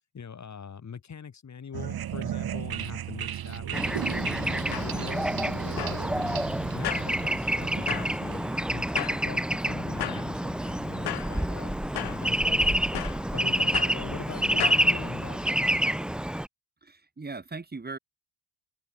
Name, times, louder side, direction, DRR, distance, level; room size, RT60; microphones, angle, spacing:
voice 1, 0.1-3.8 4.2-6.5 6.7-8.4 8.7-11.8 12.0-12.9 13.3-15.5, left 6 dB, 40° left, 5.9 m, -42 dB
sound 1, 1.7-9.2, right 10 dB, 55° right, 3.2 m, -36 dB
Bird / Traffic noise roadway noise, 3.7-16.5, right 1 dB, ahead, 0.6 m, -28 dB
sound 2, 4.4-14.9, left 12 dB, 60° left, 3.6 m, -38 dB
voice 2, 16.8-18.0, right 3 dB, 20° right, 5.0 m, -39 dB
open air
supercardioid pair, 85°, 44 cm